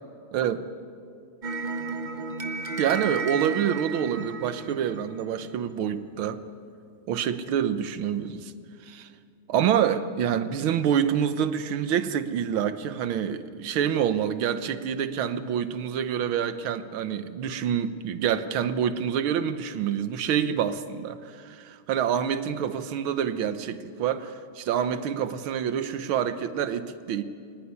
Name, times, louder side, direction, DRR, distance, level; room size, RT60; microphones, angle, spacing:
voice 1, 0.3-0.7 2.8-6.4 7.1-8.5 8.9-9.1 9.5-21.2 21.4-27.2, right 8 dB, 70° right, 11 dB, 1.8 m, -27 dB
sound 1, 1.4-5.7, right 4 dB, 50° right, 0.5 m, -33 dB
22.0 x 19.0 x 9.7 m, 2.3 s
omnidirectional pair, 2.4 m